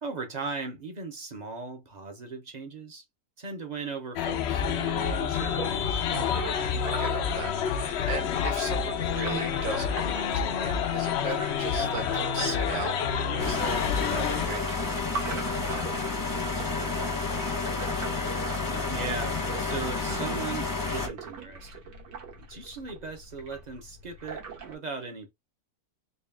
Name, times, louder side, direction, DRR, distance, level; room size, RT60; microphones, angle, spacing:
voice 1, 0.0-3.0 3.4-6.0 18.9-21.9 22.3-25.3, right 4 dB, 45° right, 0.5 m, -38 dB
sound 1, 4.2-14.5, left 8 dB, 85° left, 0.5 m, -28 dB
sound 2, 4.8-24.7, right 5 dB, 85° right, 1.9 m, -42 dB
voice 2, 6.8-17.4, right 4 dB, 70° right, 1.9 m, -39 dB
sound 3, 13.4-21.1, left 4 dB, 20° left, 0.5 m, -30 dB
4.0 x 2.3 x 3.4 m
omnidirectional pair, 1.8 m